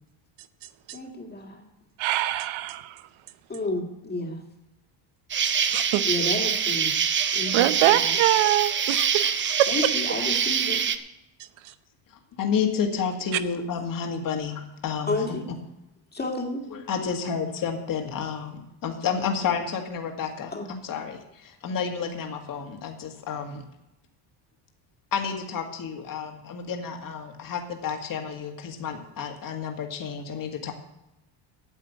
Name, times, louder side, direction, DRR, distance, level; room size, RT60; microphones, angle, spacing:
voice 1, 0.9-1.6 3.5-4.4 6.0-7.0 7.3-8.2 9.7-10.8 15.1-15.4 16.1-16.6 20.5-20.7, left 2 dB, 20° left, 2 dB, 2.0 m, -31 dB
voice 2, 2.0-2.9 5.7-6.0 7.5-9.3 9.6-9.7, right 14 dB, 70° right, 13 dB, 0.9 m, -23 dB
Insect, 5.3-11.0, right 7 dB, 25° right, 0.5 m, -25 dB
voice 3, 12.4-15.2 16.7-23.6 25.1-30.7, left 6 dB, 40° left, 4 dB, 1.8 m, -30 dB
9.6 x 8.2 x 8.3 m, 0.88 s
cardioid pair, 145°, 49 cm